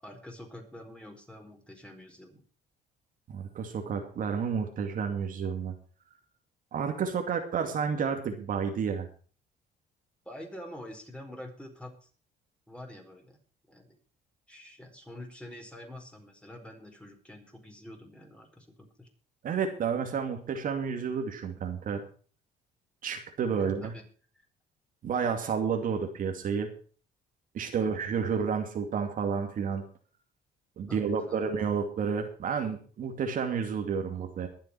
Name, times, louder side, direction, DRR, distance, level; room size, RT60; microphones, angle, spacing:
voice 1, 0.0-2.4 10.2-12.1 12.7-13.4 13.7-14.0 14.5-19.1 23.6-24.0 24.3-24.4 27.8-28.0 30.9-31.5, left 1 dB, 5° left, 2 dB, 4.6 m, -46 dB
voice 2, 3.3-5.7 6.7-9.1 19.4-22.0 23.0-23.9 25.0-26.7 27.5-29.8 30.8-34.5, right 6 dB, 55° right, 4 dB, 2.5 m, -30 dB
22.5 x 7.5 x 4.8 m, 0.41 s
cardioid pair, 110°, 17 cm